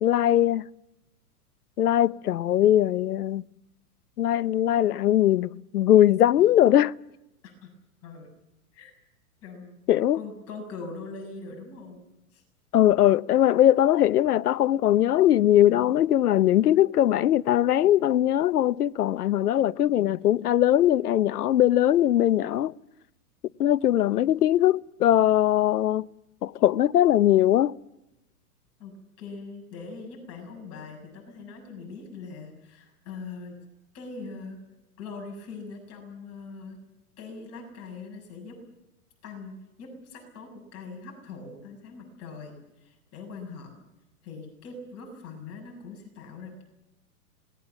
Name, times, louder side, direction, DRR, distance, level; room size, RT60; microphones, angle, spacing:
voice 1, 0.0-0.6 1.8-3.4 4.2-6.9 9.9-10.2 12.7-22.7 23.6-26.0 26.4-27.8, left 12 dB, 80° left, 0.8 m, -21 dB
voice 2, 9.4-9.8 10.1-12.0 12.3-12.4 28.8-33.6 33.9-34.6 35.0-36.8 37.2-38.6 39.2-43.7 44.2-46.6, left 4 dB, 30° left, 7.1 m, -42 dB
26.5 x 20.5 x 7.2 m
hypercardioid pair, 125°, 45 cm